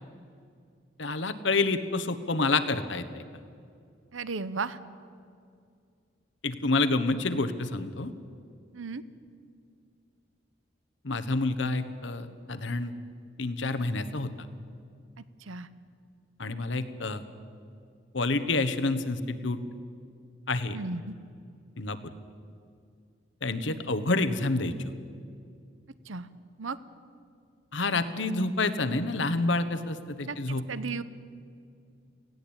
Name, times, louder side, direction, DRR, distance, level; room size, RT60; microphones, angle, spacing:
voice 1, 1.0-3.2 6.4-8.1 11.0-12.9 13.4-14.3 16.4-17.2 18.1-19.6 20.5-20.8 21.8-22.0 23.4-24.9 27.7-30.6, left 3 dB, 70° left, 12 dB, 1.2 m, -28 dB
voice 2, 4.1-4.8 8.7-9.0 15.5-15.7 20.7-21.1 26.1-26.3 26.6-26.8 30.3-30.4 30.7-31.0, right 4 dB, 85° right, 16 dB, 0.8 m, -34 dB
18.5 x 16.0 x 8.9 m, 2.3 s
head